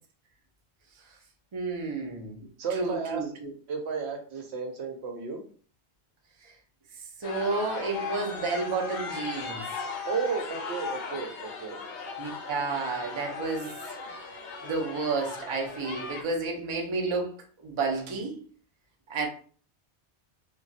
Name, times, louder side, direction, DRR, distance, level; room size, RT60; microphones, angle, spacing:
voice 1, 1.5-2.4 2.7-3.5 7.2-9.7 12.2-13.8 14.6-17.3 17.6-18.4 19.1-19.3, right 3 dB, 35° right, 0 dB, 0.5 m, -31 dB
voice 2, 2.6-3.2 3.7-5.4 10.0-11.8, right 5 dB, 75° right, 3 dB, 0.9 m, -33 dB
sound 1, 7.2-16.2, left 4 dB, 55° left, 0.6 m, -37 dB
2.9 x 2.3 x 2.7 m, 0.43 s
omnidirectional pair, 1.1 m